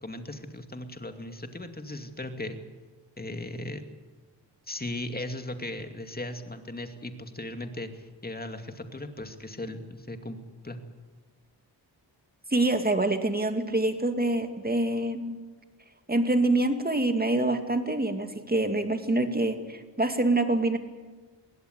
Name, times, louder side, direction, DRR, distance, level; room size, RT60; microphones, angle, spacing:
voice 1, 0.0-2.6 3.2-3.8 4.7-10.4 10.6-10.8, left 1 dB, 20° left, 6 dB, 2.5 m, -37 dB
voice 2, 12.5-15.4 16.1-20.8, right 2 dB, 20° right, 7 dB, 2.4 m, -26 dB
22.0 x 17.0 x 8.2 m, 1.3 s
cardioid pair, 70°, 45 cm